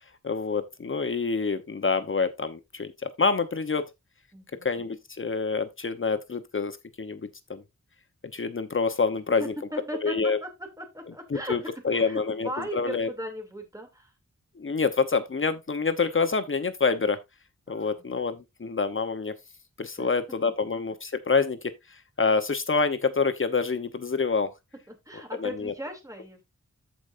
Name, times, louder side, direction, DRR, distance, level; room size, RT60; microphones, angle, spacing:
voice 1, 0.2-3.9 4.6-7.2 7.5-7.6 8.3-9.5 10.0-10.4 11.3-11.6 11.8-13.1 14.6-17.2 17.7-19.3 19.8-24.5 25.4-25.7, left 4 dB, 45° left, 0.9 m, -27 dB
voice 2, 4.3-4.7 9.4-14.1 17.7-18.0 20.0-20.1 24.9-26.4, right 1 dB, 10° right, 2.8 m, -38 dB
14.0 x 5.0 x 2.6 m
wide cardioid pair, 95°, 29 cm